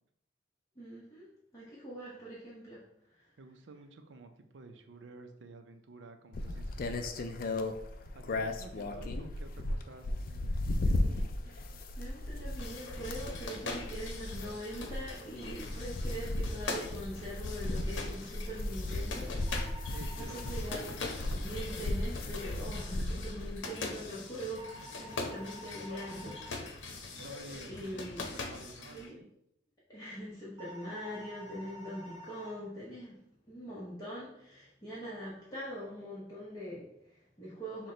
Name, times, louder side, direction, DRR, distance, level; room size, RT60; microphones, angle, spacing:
voice 1, 0.8-3.3 11.0-20.9 21.3-26.8 27.7-28.2 28.9-29.2 29.9-33.2 33.5-37.9, equal, 20° left, -8 dB, 0.9 m, -43 dB
voice 2, 3.4-11.1 19.9-20.9 27.2-29.3, right 3 dB, 80° right, 7 dB, 0.5 m, -52 dB
sound 1, 6.3-23.6, left 1 dB, 50° left, 0.4 m, -36 dB
sound 2, 12.6-29.1, left 3 dB, 90° left, 0.7 m, -42 dB
sound 3, 19.4-20.6 24.6-26.6 30.6-32.6, equal, 25° right, 0.8 m, -49 dB
5.9 x 2.2 x 3.8 m, 0.77 s
head